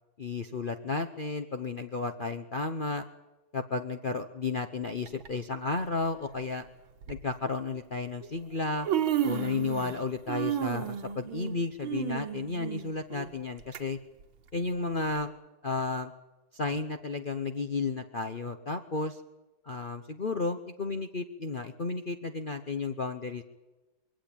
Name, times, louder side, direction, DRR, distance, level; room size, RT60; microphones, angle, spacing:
voice 1, 0.2-3.0 3.5-6.6 7.1-8.9 9.2-14.0 14.5-15.3 15.6-16.1 16.5-19.2 19.6-23.4, left 3 dB, 70° left, 8 dB, 0.4 m, -33 dB
Human voice, 5.1-5.3 6.3-6.4 7.0-7.2 8.2-8.3 8.6-10.0 10.3-13.8 14.2-14.3 15.2-15.3, right 10 dB, 75° right, 2.0 m, -32 dB
22.5 x 16.5 x 8.8 m, 1.1 s
omnidirectional pair, 2.3 m